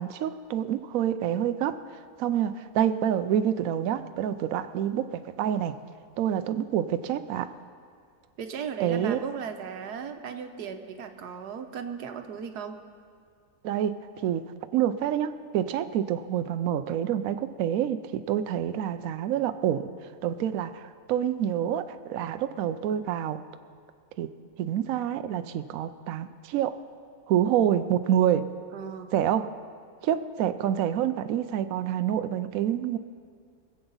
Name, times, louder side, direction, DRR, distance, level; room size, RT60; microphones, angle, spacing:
voice 1, 0.0-1.9 2.2-5.8 6.2-7.5 8.8-9.2 13.6-19.9 20.2-23.4 24.2-24.3 24.6-26.8 27.3-28.5 29.1-29.5 30.0-33.0, right 10 dB, 70° right, 11 dB, 0.9 m, -27 dB
voice 2, 8.4-12.8 28.7-29.1, right 7 dB, 85° right, 7 dB, 1.5 m, -37 dB
24.0 x 8.0 x 5.4 m, 2.2 s
omnidirectional pair, 1.7 m